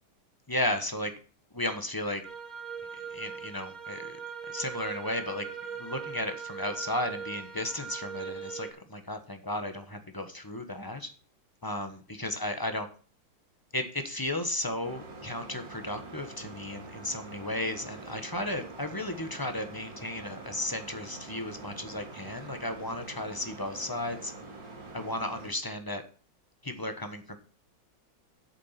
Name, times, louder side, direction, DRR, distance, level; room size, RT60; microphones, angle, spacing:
voice 1, 0.5-1.1 1.5-2.2 3.1-4.2 4.5-5.5 5.8-11.1 11.6-12.9 13.7-24.3 24.9-26.0 26.6-27.4, left 1 dB, 15° left, 7 dB, 1.0 m, -34 dB
sound 1, 2.2-8.7, right 6 dB, 35° right, 0.8 m, -40 dB
sound 2, 14.8-25.5, right 3 dB, 75° right, 4.5 m, -45 dB
8.6 x 7.1 x 5.8 m, 0.40 s
omnidirectional pair, 2.0 m